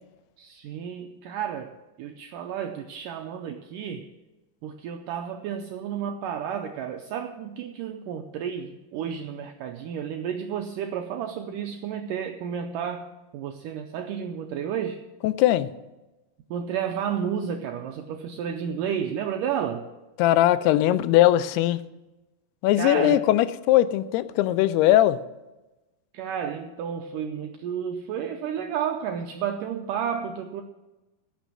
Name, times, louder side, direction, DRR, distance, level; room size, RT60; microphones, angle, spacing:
voice 1, 0.4-4.1 4.6-15.0 16.5-19.9 22.8-23.2 26.1-30.6, right 8 dB, 90° right, 5 dB, 1.9 m, -31 dB
voice 2, 15.2-15.7 20.2-21.8 22.6-25.2, left 14 dB, 90° left, 13 dB, 2.6 m, -20 dB
16.5 x 6.2 x 7.6 m, 1.1 s
omnidirectional pair, 4.5 m